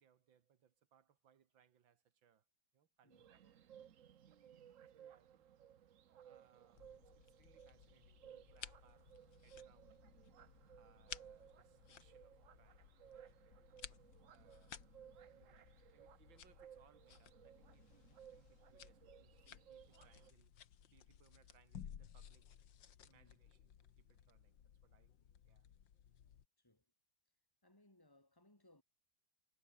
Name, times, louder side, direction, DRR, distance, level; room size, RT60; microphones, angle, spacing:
voice 1, 0.0-2.5 2.7-3.9 4.3-4.7 4.9-5.5 6.2-10.1 10.7-20.6 20.9-22.6 23.0-23.7 24.0-25.1 25.5-25.7, right 8 dB, 70° right, 2.3 m, -73 dB
voice 2, 3.0-3.3 23.1-23.4 26.6-26.9 27.6-28.8, left 1 dB, 10° left, 4.7 m, -69 dB
sound 1, 3.1-20.3, right 9 dB, 55° right, 1.0 m, -61 dB
sound 2, 6.7-26.5, left 9 dB, 65° left, 2.0 m, -58 dB
omnidirectional pair, 2.2 m